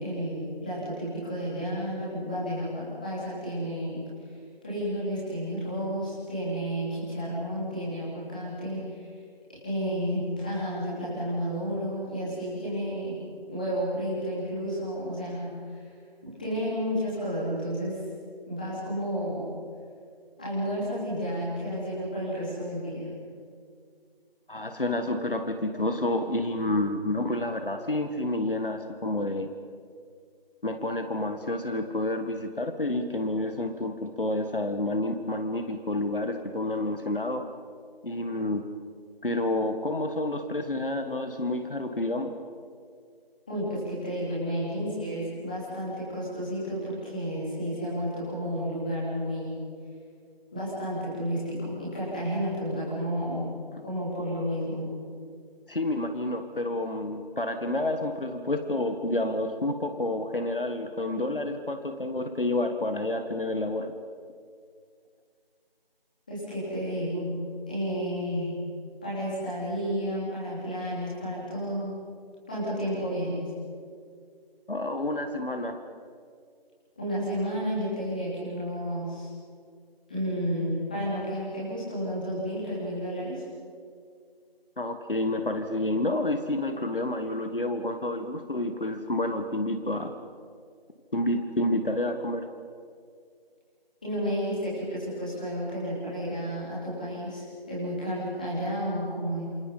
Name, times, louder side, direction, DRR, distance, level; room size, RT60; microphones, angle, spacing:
voice 1, 0.0-4.1 4.6-9.1 9.6-13.2 13.5-15.8 16.2-18.0 18.5-19.5 20.4-23.1 43.5-49.6 50.5-53.5 53.8-54.9 66.3-67.4 67.7-68.6 69.0-71.9 72.5-73.4 77.0-79.3 80.1-83.4 94.0-99.4, equal, 10° left, -9 dB, 3.6 m, -31 dB
voice 2, 24.5-29.5 30.6-37.4 38.0-38.6 39.2-42.4 55.7-63.9 74.7-75.8 84.8-90.1 91.1-92.5, left 1 dB, 60° left, 7 dB, 1.8 m, -29 dB
28.0 x 27.0 x 5.6 m, 2.2 s
figure-of-eight pair, 175°, 30 cm